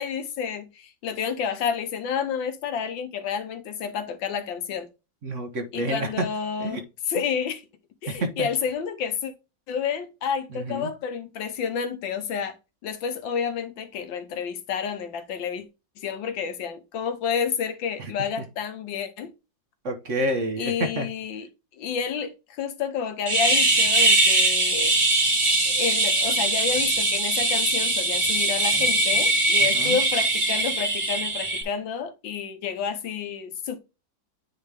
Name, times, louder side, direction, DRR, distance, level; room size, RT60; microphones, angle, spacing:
voice 1, 0.0-4.9 5.7-7.7 8.0-9.3 9.7-12.6 12.8-15.6 16.0-19.3 20.6-21.5 21.8-25.0 25.7-33.8, left 7 dB, 85° left, 1.7 m, -30 dB
voice 2, 5.2-6.2 6.6-6.8 8.1-8.5 10.5-10.9 18.0-18.1 19.8-21.1 29.6-30.0, right 1 dB, 45° right, 1.2 m, -29 dB
sound 1, 23.3-31.6, right 2 dB, 20° right, 0.9 m, -21 dB
9.4 x 3.3 x 3.5 m
omnidirectional pair, 2.1 m